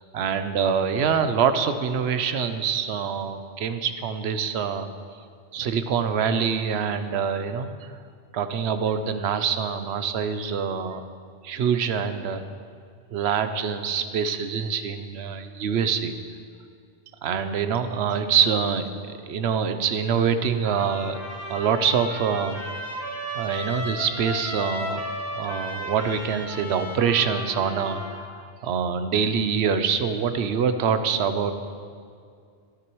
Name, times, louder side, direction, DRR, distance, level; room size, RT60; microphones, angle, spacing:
voice 1, 0.1-4.9 5.5-7.9 8.3-11.0 11.4-12.4 13.1-16.1 17.2-21.2 21.5-22.6 23.3-25.0 25.3-31.5, right 7 dB, 80° right, 9 dB, 0.9 m, -25 dB
Trumpet, 20.6-28.2, left 1 dB, 15° left, 1.7 m, -35 dB
15.0 x 9.7 x 3.1 m, 2.2 s
omnidirectional pair, 1.1 m